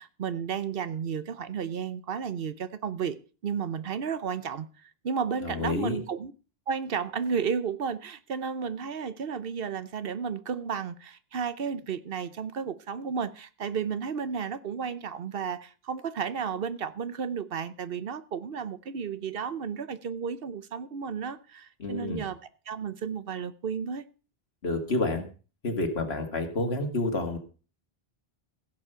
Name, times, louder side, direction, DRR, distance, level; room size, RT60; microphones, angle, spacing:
voice 1, 0.0-4.7 5.0-6.3 6.7-22.4 22.7-24.0, right 6 dB, 65° right, 1.0 m, -33 dB
voice 2, 5.4-6.0 21.8-22.2 24.6-25.2 25.6-27.4, left 2 dB, 80° left, 2.3 m, -29 dB
16.0 x 7.5 x 5.6 m
omnidirectional pair, 1.0 m